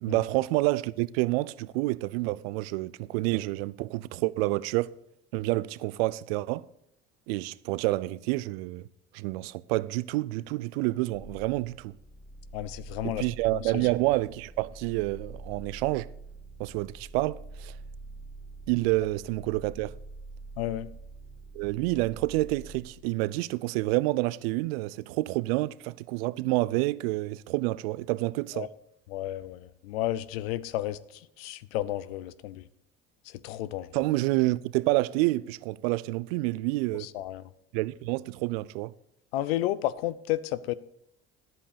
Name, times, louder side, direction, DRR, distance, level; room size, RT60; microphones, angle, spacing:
voice 1, 0.0-4.9 5.3-6.6 7.3-8.9 9.1-11.9 13.0-16.1 16.6-17.7 18.7-19.9 21.5-28.7 33.9-37.1 37.7-38.9, right 20 dB, 80° right, 0.5 m, -28 dB
sound 1, 11.1-22.8, right 3 dB, 60° left, 2.8 m, -45 dB
voice 2, 12.5-13.2 13.6-13.8 20.6-20.9 28.5-28.7 29.1-32.7 33.3-33.9 37.0-37.4 39.3-40.7, left 14 dB, 85° left, 0.5 m, -32 dB
10.5 x 7.8 x 5.0 m
hypercardioid pair, 80°, 30 cm